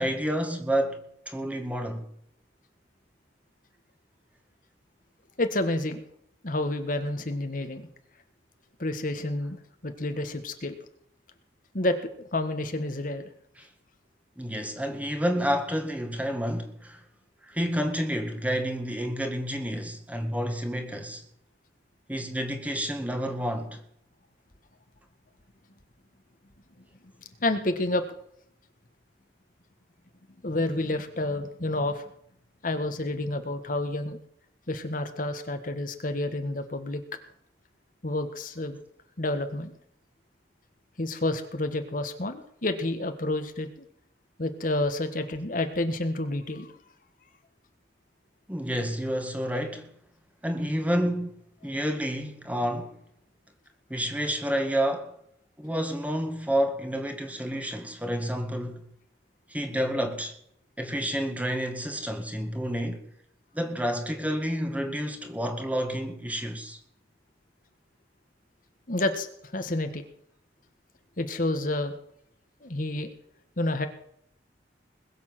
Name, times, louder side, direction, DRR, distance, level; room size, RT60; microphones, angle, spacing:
voice 1, 0.0-2.0 13.6-13.7 14.4-17.0 17.4-21.2 22.1-23.8 48.5-49.9 50.4-51.4 51.6-53.0 53.9-55.1 55.6-58.8 59.5-60.4 60.8-63.0 63.5-66.8, equal, 10° right, 1.9 m, -29 dB
voice 2, 5.4-6.0 6.4-7.9 8.8-10.8 11.7-13.2 27.4-28.0 30.4-32.1 32.6-34.2 34.7-37.0 38.0-38.8 39.2-39.8 41.0-43.8 44.4-46.7 68.9-70.0 71.2-71.9 72.6-73.1 73.6-73.9, left 2 dB, 50° left, 1.5 m, -29 dB
21.0 x 7.4 x 7.5 m
head